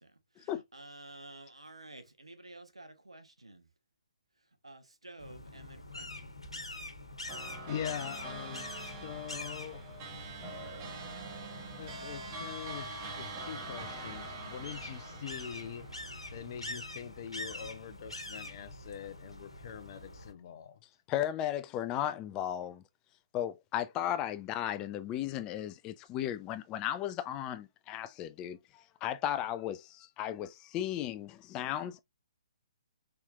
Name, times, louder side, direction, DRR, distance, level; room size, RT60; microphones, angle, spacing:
voice 1, 0.0-3.7 4.6-6.4, right 2 dB, 85° right, 0.9 m, -51 dB
sound 1, 5.2-20.3, left 2 dB, 90° left, 1.2 m, -45 dB
sound 2, 7.3-16.9, right 2 dB, 30° right, 1.4 m, -44 dB
voice 2, 7.7-9.8 11.7-12.9 13.1-15.9 16.3-20.8, left 9 dB, 45° left, 0.8 m, -43 dB
voice 3, 21.1-22.8 23.3-28.6 29.0-32.0, left 11 dB, 25° left, 0.5 m, -35 dB
4.4 x 3.5 x 2.4 m
figure-of-eight pair, 130°, 3 cm